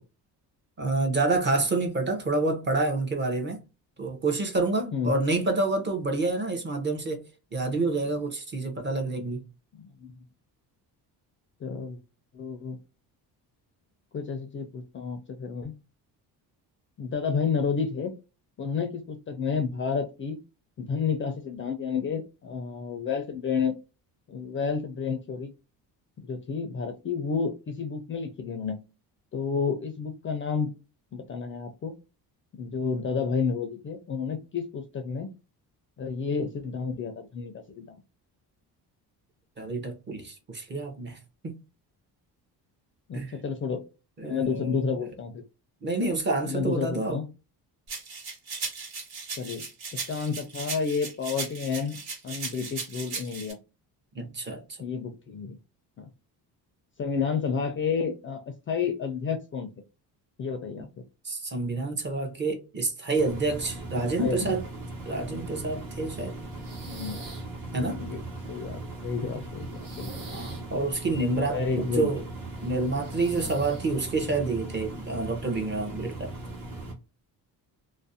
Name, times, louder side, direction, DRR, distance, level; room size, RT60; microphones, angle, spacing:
voice 1, 0.8-3.6 4.0-7.2 7.5-9.4 39.6-41.6 43.1-43.3 44.2-45.1 45.8-47.2 54.1-54.9 60.8-60.9 61.2-64.6 65.1-66.3 67.7-68.0 70.3-72.2 72.6-76.3, right 3 dB, 30° right, 0.6 m, -28 dB
voice 2, 9.7-10.2 11.6-12.0 12.3-12.8 14.1-15.7 17.0-18.1 18.6-20.4 20.8-23.8 24.3-25.5 26.2-28.8 29.3-30.7 31.1-32.0 32.6-35.3 36.0-38.0 43.1-43.8 44.2-45.4 46.4-47.2 49.4-49.7 49.9-52.0 52.2-53.6 54.8-55.6 56.0-56.1 57.0-59.7 60.4-60.9 64.2-64.6 66.8-67.2 68.0-68.2 68.5-70.3 71.4-72.1, left 5 dB, 35° left, 0.4 m, -30 dB
sound 1, 47.9-53.5, right 4 dB, 70° right, 1.3 m, -37 dB
Engine, 63.2-76.9, right 2 dB, 55° right, 1.1 m, -39 dB
sound 2, 66.5-67.5 68.3-69.3 69.6-71.3 72.7-74.0, right 2 dB, 85° right, 1.0 m, -47 dB
2.5 x 2.0 x 2.6 m
cardioid pair, 130°, 39 cm